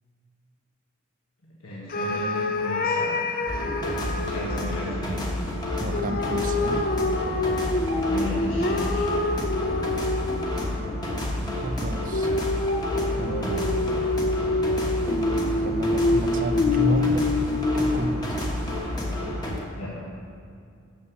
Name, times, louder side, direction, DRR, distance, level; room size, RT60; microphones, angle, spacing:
voice 1, 1.4-3.2 4.1-5.3 7.9-9.2 13.3-13.6 19.7-20.1, equal, 85° left, -6 dB, 1.5 m, -35 dB
sound 1, 1.9-4.9 5.9-10.7 12.1-18.2, left 2 dB, 45° left, 0.6 m, -26 dB
sound 2, 3.5-19.6, left 1 dB, 20° left, 1.2 m, -30 dB
voice 2, 5.8-7.0 11.1-12.3 13.2-13.9 15.1-17.4 17.7-18.4, right 2 dB, 40° right, 8 dB, 0.5 m, -31 dB
6.8 x 6.7 x 6.9 m, 2.3 s
head